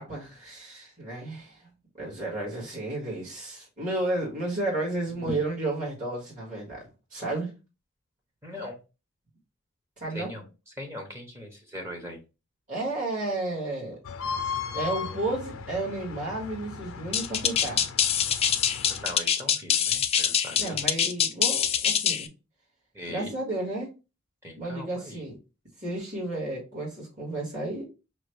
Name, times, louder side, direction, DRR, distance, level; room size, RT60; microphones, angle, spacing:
voice 1, 0.0-1.7 2.0-7.5 10.0-10.3 12.7-14.0 14.7-17.8 20.5-22.3 23.1-23.9 24.6-25.4 25.8-27.8, right 2 dB, 40° right, -5 dB, 1.9 m, -32 dB
voice 2, 8.4-8.8 10.1-10.4 10.8-12.2 17.7-17.8 18.9-21.0 22.9-23.3 24.4-25.2, left 1 dB, 15° right, 2 dB, 0.8 m, -40 dB
sound 1, 14.0-19.1, left 6 dB, 85° left, 0.5 m, -36 dB
sound 2, 17.1-22.3, left 8 dB, 30° left, 0.3 m, -24 dB
5.5 x 2.3 x 3.2 m, 0.29 s
head